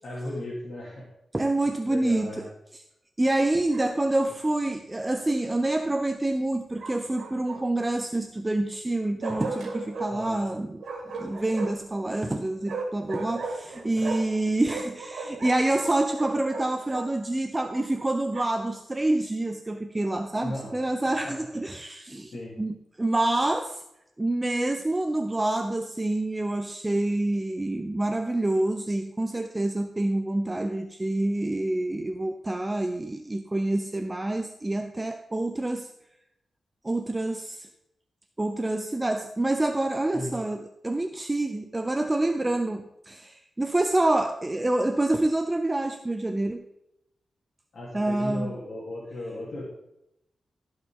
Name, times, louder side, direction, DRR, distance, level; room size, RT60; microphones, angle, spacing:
voice 1, 0.0-1.1 1.8-2.5 10.1-10.4 14.0-14.1 20.4-20.7 21.2-21.4 22.3-22.5 40.1-40.3 47.7-49.6, left 1 dB, 55° left, -5 dB, 2.7 m, -36 dB
voice 2, 1.3-2.8 3.2-10.8 11.2-23.8 24.2-35.9 36.8-37.7 38.4-46.6 47.9-48.5, right 2 dB, 15° right, 7 dB, 0.5 m, -27 dB
Bark, 3.7-4.3 6.8-7.9 9.2-10.1 10.8-11.9 12.7-14.4 14.6-17.1 17.7-18.7, right 3 dB, 85° right, 2.5 m, -36 dB
15.5 x 5.5 x 3.7 m, 0.84 s
wide cardioid pair, 115°, 0 cm